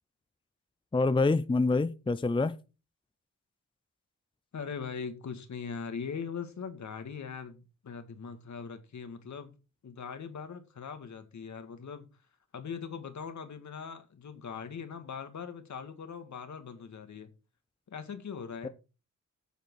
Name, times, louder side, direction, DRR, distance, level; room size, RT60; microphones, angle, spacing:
voice 1, 0.9-2.5, left 3 dB, 15° left, 0.6 m, -26 dB
voice 2, 4.5-9.5 9.8-12.1 12.5-17.3 17.9-18.7, left 6 dB, 60° left, 1.9 m, -41 dB
9.2 x 6.8 x 4.7 m
cardioid pair, 75°, 32 cm